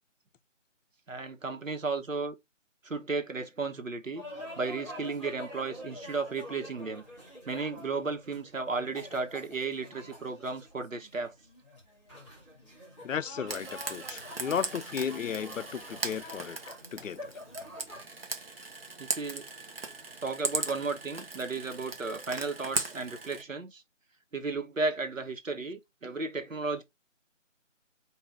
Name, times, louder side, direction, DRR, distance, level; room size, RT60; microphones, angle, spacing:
voice 1, 1.1-2.3 2.8-4.2 4.6-7.0 7.4-11.3 19.0-19.5 20.2-23.8 24.3-26.8, right 3 dB, 85° right, 1.3 m, -34 dB
sound 1, 4.1-18.0, left 1 dB, 5° left, 1.2 m, -47 dB
voice 2, 13.0-16.6 16.9-17.3, left 7 dB, 80° left, 0.5 m, -34 dB
Frying (food), 13.5-23.4, right 3 dB, 50° right, 1.0 m, -38 dB
4.7 x 2.6 x 3.3 m
figure-of-eight pair, 165°, 38 cm